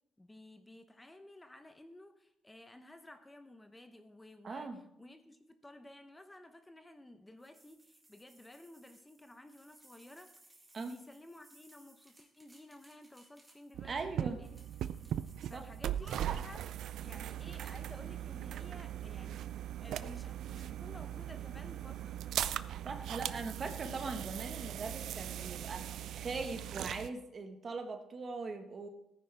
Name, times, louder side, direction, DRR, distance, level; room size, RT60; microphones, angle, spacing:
voice 1, 0.2-4.7 5.0-14.6 15.0-15.1 15.5-16.7 17.0-22.2, left 1 dB, 15° left, 8 dB, 0.9 m, -54 dB
voice 2, 4.4-4.8 10.7-11.0 13.9-14.4 15.5-15.6 22.8-28.9, right 4 dB, 40° right, 6 dB, 1.4 m, -41 dB
sound 1, 7.4-13.9 14.4-15.9, right 1 dB, 15° right, 2.3 m, -64 dB
sound 2, 13.7-27.1, right 11 dB, 75° right, 0.4 m, -39 dB
14.0 x 9.9 x 3.4 m, 0.82 s
cardioid pair, 90°, 0 cm